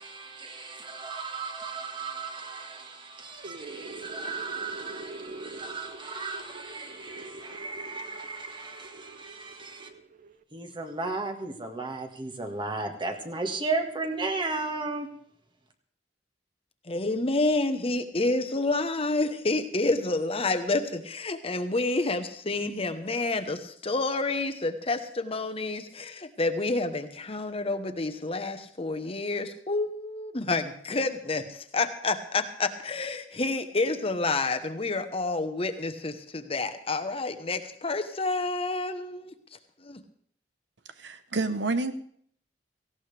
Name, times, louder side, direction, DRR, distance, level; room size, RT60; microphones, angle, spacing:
voice 1, 0.0-9.9 10.5-15.1, right 3 dB, 30° right, 1.8 m, -35 dB
sound 1, 3.2-10.4, right 3 dB, 50° right, 0.7 m, -45 dB
voice 2, 16.9-39.3 39.8-40.0, left 3 dB, 35° left, 1.1 m, -29 dB
voice 3, 41.0-41.9, right 3 dB, 90° right, 1.0 m, -28 dB
18.0 x 16.0 x 3.4 m
head